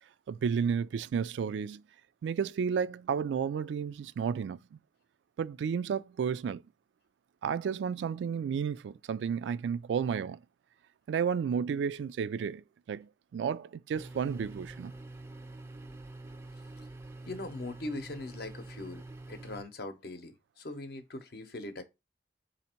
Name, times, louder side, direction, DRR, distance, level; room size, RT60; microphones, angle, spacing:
voice 1, 0.3-1.8 2.2-4.8 5.4-6.6 7.4-10.4 11.1-14.9, right 7 dB, 85° right, 0.3 m, -32 dB
sound 1, 13.9-19.6, right 2 dB, 15° right, 0.4 m, -46 dB
voice 2, 17.3-21.8, left 2 dB, 60° left, 0.7 m, -41 dB
4.3 x 2.8 x 4.2 m
head